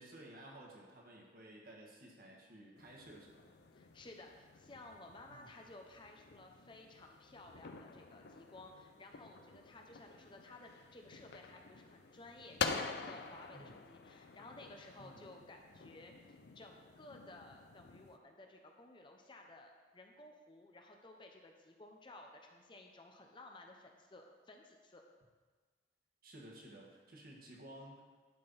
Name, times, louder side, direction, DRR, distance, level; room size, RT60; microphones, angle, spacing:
voice 1, 0.0-3.6 5.3-5.5 13.5-13.8 15.0-15.2 26.2-28.0, right 1 dB, 55° right, -2 dB, 1.7 m, -55 dB
sound 1, 2.7-18.2, left 5 dB, 65° left, 0.5 m, -47 dB
voice 2, 3.7-25.0, left 2 dB, 25° left, 2 dB, 0.7 m, -56 dB
11.0 x 4.4 x 5.5 m, 1.4 s
head